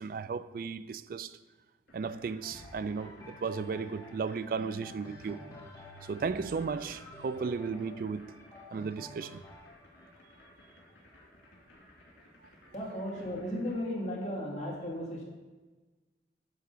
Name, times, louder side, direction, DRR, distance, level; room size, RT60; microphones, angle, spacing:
voice 1, 0.0-1.3 1.9-5.4 6.1-8.3 8.7-9.4, right 5 dB, 50° right, 0.3 m, -35 dB
sound 1, 1.9-13.7, left 1 dB, 85° left, 2.4 m, -58 dB
sound 2, 2.4-12.2 12.9-13.0, left 1 dB, 15° left, 1.0 m, -51 dB
voice 2, 12.7-15.2, equal, 40° left, 2.1 m, -35 dB
9.2 x 3.6 x 6.8 m
head